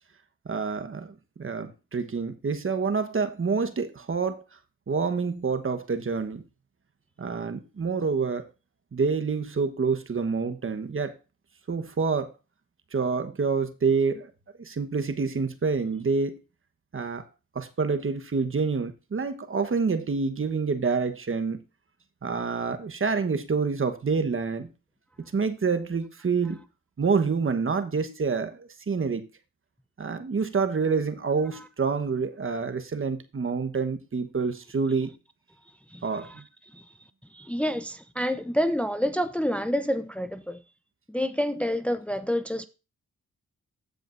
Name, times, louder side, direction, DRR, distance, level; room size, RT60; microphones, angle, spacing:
voice 1, 0.4-4.4 4.9-6.4 7.2-8.4 8.9-11.1 11.7-12.3 12.9-14.3 14.6-16.4 16.9-17.3 17.5-21.6 22.2-24.7 25.2-26.6 27.0-29.3 30.0-35.1 36.0-36.4, right 5 dB, 40° right, 1.2 m, -27 dB
voice 2, 35.7-36.4 36.7-36.9 37.3-40.6 41.1-42.7, equal, 5° left, 0.7 m, -28 dB
14.0 x 5.1 x 2.6 m
supercardioid pair, 45°, 32 cm